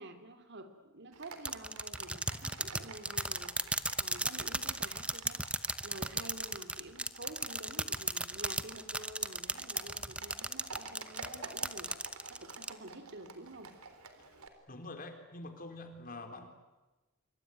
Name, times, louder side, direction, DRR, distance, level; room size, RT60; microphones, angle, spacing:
voice 1, 0.0-11.9 12.3-13.7 16.2-16.5, right 2 dB, 55° right, 8 dB, 3.0 m, -49 dB
Livestock farm animals working animals, 1.1-14.5, right 4 dB, 80° right, 3.6 m, -51 dB
sound 1, 1.5-12.7, right 2 dB, 5° right, 0.9 m, -35 dB
voice 2, 14.7-16.5, left 2 dB, 40° left, 6 dB, 3.9 m, -45 dB
26.5 x 24.0 x 9.3 m, 1.1 s
head